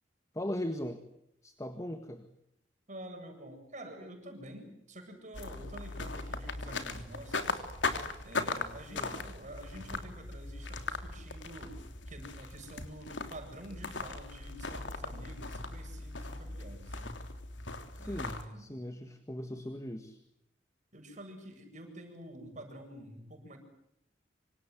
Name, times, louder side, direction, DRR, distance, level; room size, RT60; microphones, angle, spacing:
voice 1, 0.3-1.0 1.4-2.3 8.9-9.2 17.9-20.2, left 1 dB, 20° left, 9 dB, 1.8 m, -39 dB
voice 2, 2.9-7.7 8.2-11.8 12.1-17.2 18.0-18.7 20.9-23.6, right 1 dB, 45° right, 4 dB, 7.8 m, -48 dB
sound 1, 5.3-18.4, left 3 dB, 85° left, 3.3 m, -39 dB
26.5 x 26.0 x 8.0 m, 0.78 s
head